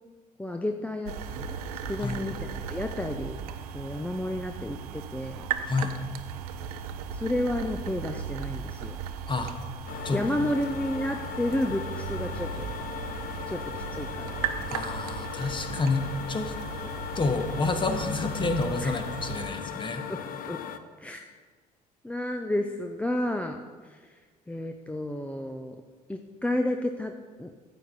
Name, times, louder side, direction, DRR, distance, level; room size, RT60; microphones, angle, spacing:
voice 1, 0.4-1.5 1.9-3.4 3.7-5.4 7.1-9.0 10.1-12.6 13.5-14.3 18.8-18.9 20.1-20.6 21.0-21.2 22.0-24.2 24.5-25.8 26.1-27.6, left 1 dB, 5° left, 5 dB, 0.5 m, -31 dB
sound 1, 1.1-19.5, right 7 dB, 70° right, 0.7 m, -37 dB
sound 2, 9.9-20.8, left 9 dB, 45° left, 0.7 m, -38 dB
voice 2, 14.7-16.0 16.3-16.5 17.1-20.0, left 3 dB, 25° left, 7 dB, 1.2 m, -29 dB
14.0 x 7.3 x 4.1 m, 1.5 s
figure-of-eight pair, 55°, 20 cm